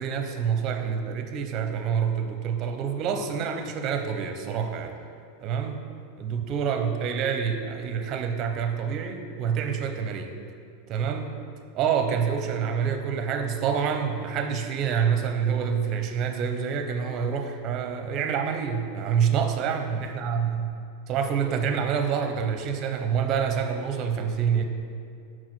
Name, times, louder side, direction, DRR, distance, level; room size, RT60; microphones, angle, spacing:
voice 1, 0.0-4.9 5.4-5.8 6.2-10.3 10.9-11.3 11.7-20.7 21.1-24.6, right 7 dB, 40° right, 6 dB, 0.7 m, -27 dB
6.0 x 4.8 x 6.0 m, 2.4 s
supercardioid pair, 140°, 0 cm